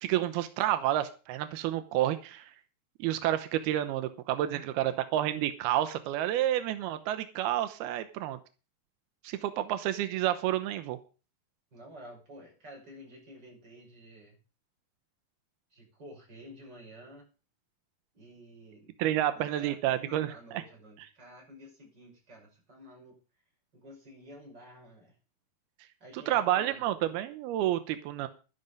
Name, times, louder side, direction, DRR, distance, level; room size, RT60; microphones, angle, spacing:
voice 1, 0.0-2.5 3.0-8.4 9.2-11.0 19.0-20.6 26.3-28.3, right 13 dB, 90° right, 10 dB, 2.9 m, -30 dB
voice 2, 11.7-14.4 15.7-17.3 18.1-18.9 19.2-23.2 23.7-25.2 26.0-26.9, equal, 25° right, -1 dB, 7.0 m, -51 dB
12.5 x 11.0 x 5.3 m, 0.34 s
omnidirectional pair, 4.3 m